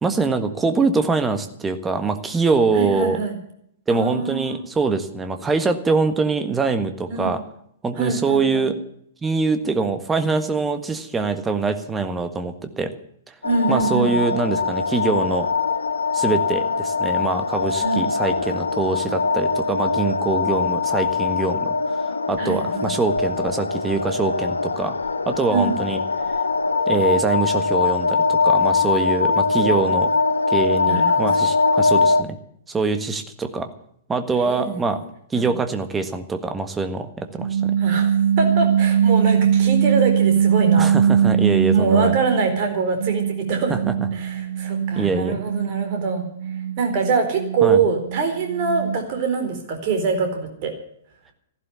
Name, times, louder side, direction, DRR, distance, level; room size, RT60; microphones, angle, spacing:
voice 1, 0.0-3.2 3.9-7.4 7.8-8.7 9.2-12.9 13.3-13.4 13.7-15.5 16.1-24.9 25.2-26.0 26.9-30.1 30.5-32.4 32.7-33.7 34.1-35.0 35.3-37.7 40.8-42.1 43.7-43.8 44.9-45.4 47.6-47.8, right 4 dB, 10° right, 8 dB, 1.6 m, -23 dB
voice 2, 2.7-3.4 3.9-4.6 7.1-7.4 8.0-8.7 13.4-14.1 17.8-18.1 22.4-22.9 25.5-25.8 29.5-30.0 30.8-31.5 34.4-35.0 35.3-35.5 37.8-40.9 41.7-43.7 44.1-46.3 46.8-50.7, right 4 dB, 40° right, 4 dB, 4.2 m, -24 dB
sound 1, 13.4-32.2, left 4 dB, 75° left, 0.7 m, -22 dB
sound 2, 37.4-42.6 43.0-49.2, right 8 dB, 65° right, 0.8 m, -21 dB
15.0 x 12.0 x 7.1 m, 0.70 s
figure-of-eight pair, 110°, 0 cm